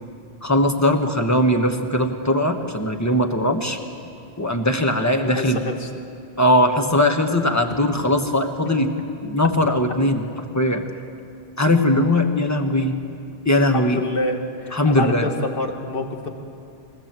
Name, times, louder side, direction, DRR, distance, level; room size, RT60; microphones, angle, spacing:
voice 1, 0.4-3.8 4.4-5.6 6.4-8.9 9.2-10.3 10.5-10.9 11.6-13.0 13.4-14.0 14.7-15.3, left 1 dB, 15° left, 5 dB, 1.3 m, -20 dB
voice 2, 5.2-5.9 13.7-16.3, left 2 dB, 65° left, 4 dB, 1.9 m, -27 dB
22.5 x 18.5 x 7.6 m, 2.5 s
omnidirectional pair, 1.0 m